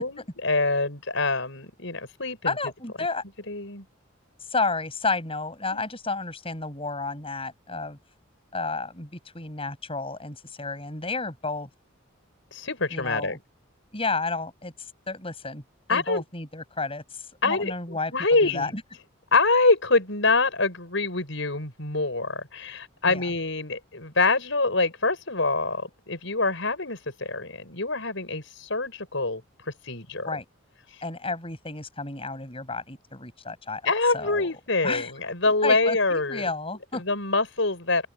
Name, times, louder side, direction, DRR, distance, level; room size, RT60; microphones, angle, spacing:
voice 1, 0.0-2.6 3.5-3.8 5.7-5.8 12.5-13.4 15.9-16.2 17.4-18.7 19.3-29.4 29.8-30.4 33.8-36.5 36.9-38.1, left 3 dB, 70° left, 6.8 m, -25 dB
voice 2, 2.5-3.2 4.5-8.0 8.5-11.7 12.9-13.4 13.9-15.6 15.9-18.1 18.4-18.8 23.1-23.2 30.3-30.5 31.0-33.8 34.1-34.5 34.8-35.1 35.6-37.0, left 3 dB, 30° left, 7.4 m, -31 dB
head